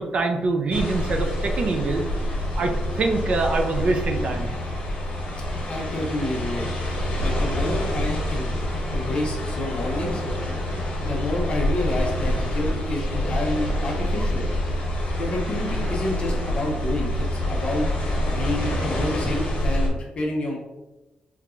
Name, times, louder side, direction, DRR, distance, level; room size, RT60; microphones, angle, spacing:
voice 1, 0.0-2.0 2.6-4.5, right 3 dB, 45° right, 4 dB, 0.4 m, -24 dB
sound 1, 0.7-19.9, equal, 60° left, 1.3 m, -26 dB
voice 2, 5.7-6.7 7.2-8.5 8.9-10.2 11.0-14.5 15.2-17.9 18.2-20.6, left 2 dB, 40° left, 0 dB, 0.7 m, -29 dB
3.6 x 2.8 x 2.4 m, 1.0 s
wide cardioid pair, 155°, 3 cm